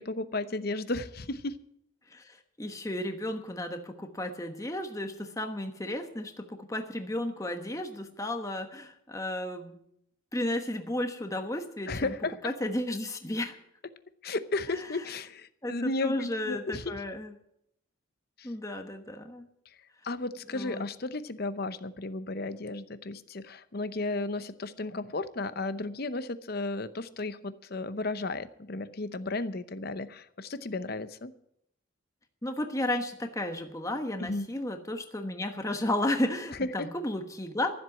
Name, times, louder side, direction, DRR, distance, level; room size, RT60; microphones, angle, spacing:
voice 1, 0.0-1.6 11.9-12.5 14.2-17.0 18.4-18.5 20.0-31.3 34.2-34.5 36.6-36.9, left 2 dB, 45° left, 12 dB, 0.8 m, -34 dB
voice 2, 2.1-9.8 10.3-12.1 12.4-13.6 14.7-15.0 15.6-17.3 18.4-19.5 20.5-20.8 32.4-37.7, left 1 dB, 15° left, 5 dB, 1.2 m, -33 dB
13.5 x 7.7 x 9.6 m, 0.75 s
head